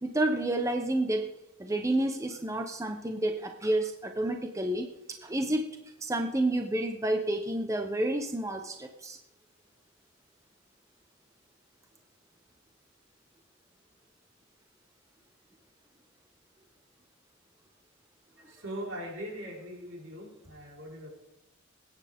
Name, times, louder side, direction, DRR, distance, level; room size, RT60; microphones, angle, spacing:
voice 1, 0.0-1.3 1.6-4.9 5.2-5.7 6.0-9.2, right 1 dB, 15° right, 4 dB, 0.8 m, -29 dB
voice 2, 18.4-21.1, equal, 80° right, -2 dB, 4.4 m, -41 dB
21.0 x 9.3 x 3.6 m, 0.92 s
head